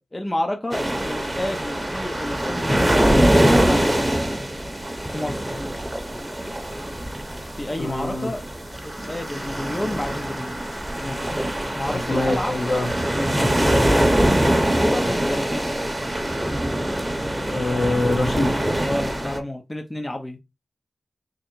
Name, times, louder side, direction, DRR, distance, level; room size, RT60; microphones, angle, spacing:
voice 1, 0.0-4.4 5.1-5.6 7.6-8.4 8.8-10.6 11.0-11.4 11.7-12.5 13.2-14.0 14.3-15.7 18.8-20.4, left 1 dB, 25° left, 0.6 m, -30 dB
sound 1, 0.7-19.4, right 1 dB, 15° right, 0.9 m, -23 dB
voice 2, 7.8-8.3 11.3-11.5 12.1-12.9 13.7-13.9 17.5-18.5, left 2 dB, 65° left, 1.3 m, -24 dB
3.8 x 2.1 x 4.4 m
cardioid pair, 60°, 0 cm